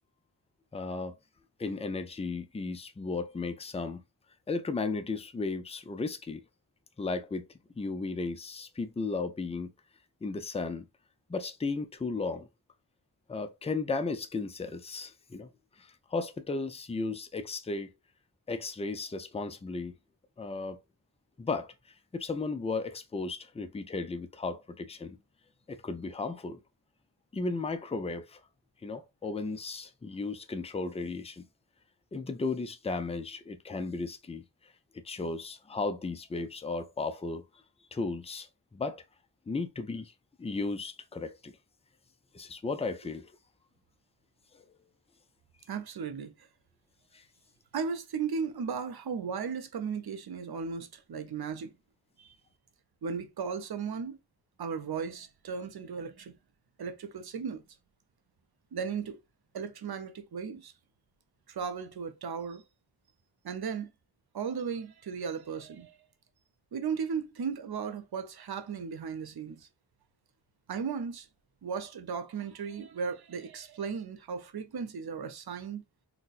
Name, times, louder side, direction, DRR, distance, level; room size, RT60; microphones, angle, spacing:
voice 1, 0.7-1.2 1.6-4.0 4.5-6.4 7.0-7.5 7.8-9.7 10.2-10.8 11.3-12.5 13.3-15.5 15.8-17.9 18.5-19.9 20.4-20.8 21.4-21.7 22.1-25.2 25.7-26.6 27.3-28.4 28.8-31.4 32.1-34.4 35.0-37.4 37.9-39.0 39.5-40.1 40.4-41.5 42.3-43.3 47.1-47.2, left 3 dB, 15° left, 0.4 m, -35 dB
voice 2, 45.7-46.5 47.7-51.7 52.2-52.4 53.0-54.2 54.6-56.3 56.8-57.6 58.7-59.2 59.5-60.7 61.5-62.6 63.4-63.9 64.3-66.0 66.7-69.7 70.7-71.3 71.6-75.8, right 6 dB, 60° right, 0.6 m, -36 dB
4.0 x 2.1 x 2.4 m
wide cardioid pair, 85°, 43 cm